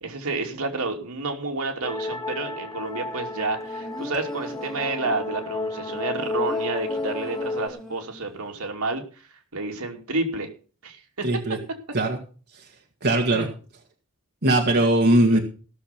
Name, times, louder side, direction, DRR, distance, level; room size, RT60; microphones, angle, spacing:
voice 1, 0.0-9.0 9.5-10.5 10.8-11.3 13.1-13.5 14.7-14.8 15.3-15.4, right 3 dB, 80° right, 3 dB, 2.9 m, -30 dB
sound 1, 1.8-7.7, left 3 dB, 20° left, 0.9 m, -32 dB
sound 2, 3.4-5.3 5.9-8.3 8.6-8.7, equal, ahead, 1.5 m, -39 dB
voice 2, 11.2-11.6 11.9-12.2 13.0-13.5 14.4-15.4, right 1 dB, 50° right, 2 dB, 2.0 m, -20 dB
17.0 x 7.0 x 6.0 m, 0.37 s
head